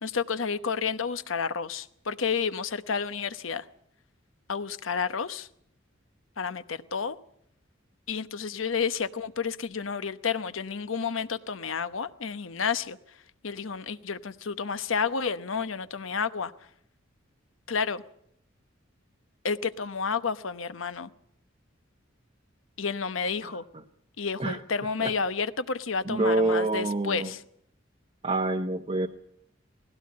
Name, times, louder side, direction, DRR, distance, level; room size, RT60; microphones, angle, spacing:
voice 1, 0.0-3.7 4.5-5.5 6.4-7.2 8.1-13.0 13.4-16.5 17.7-18.0 19.4-21.1 22.8-23.6 24.2-27.4, left 5 dB, 90° left, 0.9 m, -30 dB
voice 2, 26.0-27.3 28.2-29.1, right 2 dB, 30° right, 0.8 m, -26 dB
19.0 x 16.5 x 8.6 m
head